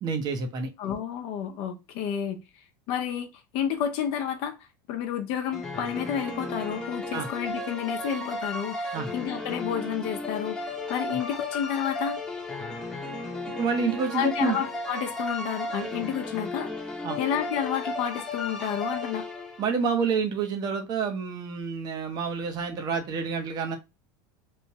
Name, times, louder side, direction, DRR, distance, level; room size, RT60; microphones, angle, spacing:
voice 1, 0.0-0.7 7.1-7.3 8.9-9.1 11.1-11.2 13.6-14.6 17.0-17.2 19.6-23.8, right 5 dB, 35° right, 0.8 m, -28 dB
voice 2, 0.8-2.4 2.9-3.3 3.5-4.6 4.9-12.2 14.1-16.9 17.2-19.3, left 8 dB, 60° left, 0.7 m, -30 dB
sound 1, 5.5-19.8, left 2 dB, 5° left, 0.9 m, -34 dB
3.1 x 2.2 x 2.8 m
supercardioid pair, 125°, 11 cm